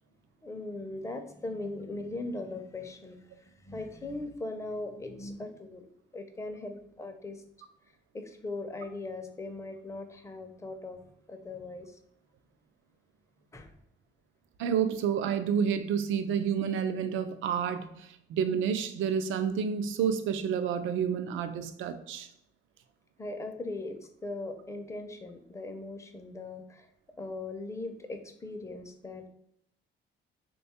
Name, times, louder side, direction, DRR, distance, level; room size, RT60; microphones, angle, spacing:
voice 1, 0.4-5.9 6.1-7.4 8.1-11.0 11.3-12.0 13.5-13.7 23.2-26.9 27.2-29.3, left 2 dB, 15° left, 6 dB, 0.5 m, -39 dB
voice 2, 14.6-22.3, right 7 dB, 80° right, 9 dB, 0.4 m, -29 dB
3.1 x 2.3 x 4.2 m, 0.75 s
cardioid pair, 90°, 20 cm